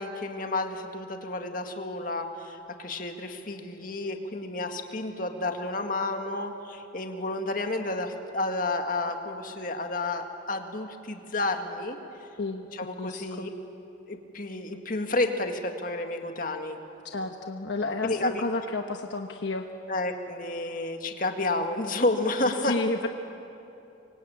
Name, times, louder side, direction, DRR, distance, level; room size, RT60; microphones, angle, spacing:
voice 1, 0.0-12.0 12.8-13.5 14.1-16.8 18.0-18.4 19.9-22.8, left 2 dB, 45° left, 5 dB, 1.9 m, -31 dB
voice 2, 12.4-13.5 17.1-19.7 22.7-23.1, left 2 dB, 70° left, 4 dB, 1.1 m, -31 dB
25.0 x 24.5 x 8.8 m, 2.8 s
head